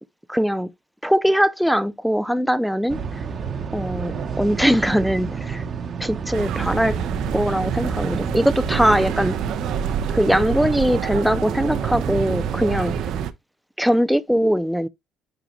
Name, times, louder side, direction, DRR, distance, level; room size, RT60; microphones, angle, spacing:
voice 1, 0.3-0.7 1.0-3.0 3.7-5.6 6.0-7.0 7.3-9.4 10.1-12.9 13.8-14.9, equal, ahead, 0.5 m, -21 dB
sound 1, 2.9-13.3, right 5 dB, 40° right, 1.0 m, -29 dB
sound 2, 6.3-13.3, right 9 dB, 70° right, 0.8 m, -28 dB
9.5 x 3.7 x 3.0 m
cardioid pair, 120°, 0 cm